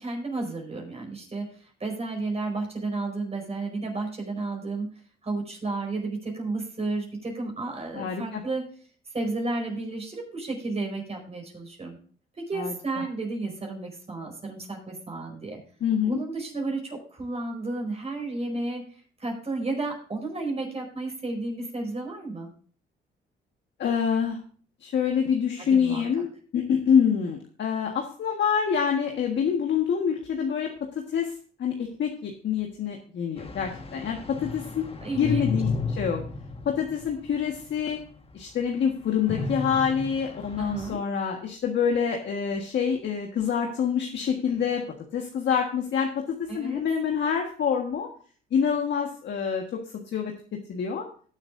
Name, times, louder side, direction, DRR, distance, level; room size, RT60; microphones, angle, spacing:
voice 1, 0.0-4.9 5.2-8.7 9.1-12.0 12.4-15.6 16.0-18.8 19.2-22.5 25.6-26.2 35.0-35.5 40.6-41.0 46.5-46.8, right 3 dB, 30° right, 0 dB, 4.9 m, -32 dB
voice 2, 7.9-8.4 12.5-12.7 15.8-16.2 23.8-24.4 24.8-31.3 31.6-34.9 35.2-35.7 36.0-36.2 36.6-38.0 38.3-44.8 45.1-48.1 48.5-49.8 50.1-50.3 50.7-51.1, left 7 dB, 65° left, 2 dB, 1.5 m, -26 dB
sound 1, 33.4-37.7 38.1-38.2 39.3-40.9, left 3 dB, 30° left, 1.5 m, -33 dB
18.5 x 7.3 x 2.6 m, 0.44 s
cardioid pair, 90°, 20 cm